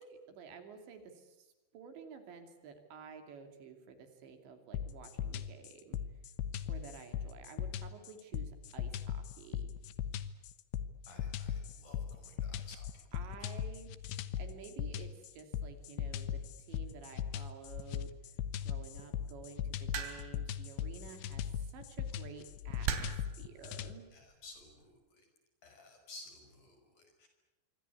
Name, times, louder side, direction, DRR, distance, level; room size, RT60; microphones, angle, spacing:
voice 1, 0.0-6.0 6.7-9.7 13.1-13.9 14.4-18.1 18.6-24.1, right 6 dB, 65° right, 6 dB, 4.8 m, -52 dB
sound 1, 4.7-23.9, left 9 dB, 80° left, 3.5 m, -39 dB
voice 2, 11.1-13.1 13.4-13.5 24.1-25.3 25.6-27.3, left 2 dB, 40° left, 5 dB, 6.7 m, -55 dB
sound 2, 19.9-20.5 21.7-21.9 22.9-23.3 24.3-24.6, right 7 dB, 85° right, 5.2 m, -37 dB
26.5 x 25.0 x 8.5 m, 1.0 s
omnidirectional pair, 5.6 m